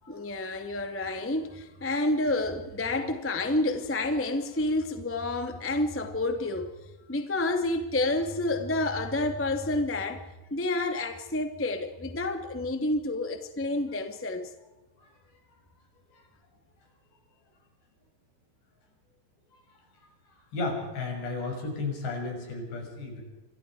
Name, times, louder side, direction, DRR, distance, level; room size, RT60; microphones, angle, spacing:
voice 1, 0.1-6.7 7.1-10.2 10.5-14.5, left 2 dB, 10° left, 0.5 m, -29 dB
voice 2, 20.5-23.2, left 3 dB, 75° left, 8.4 m, -34 dB
28.5 x 25.0 x 4.8 m
omnidirectional pair, 5.0 m